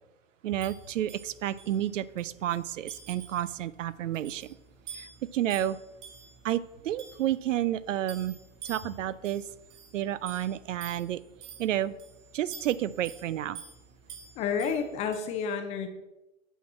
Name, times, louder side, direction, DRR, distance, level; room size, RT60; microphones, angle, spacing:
voice 1, 0.4-4.6 4.9-5.8 6.4-8.4 8.6-9.4 9.9-11.2 11.6-11.9 12.3-13.6, right 12 dB, 65° right, 18 dB, 0.5 m, -30 dB
sound 1, 0.6-15.2, right 6 dB, 40° right, 3.1 m, -49 dB
voice 2, 14.4-15.9, left 6 dB, 15° left, 7 dB, 0.5 m, -30 dB
9.0 x 4.6 x 6.0 m, 0.99 s
hypercardioid pair, 135°, 41 cm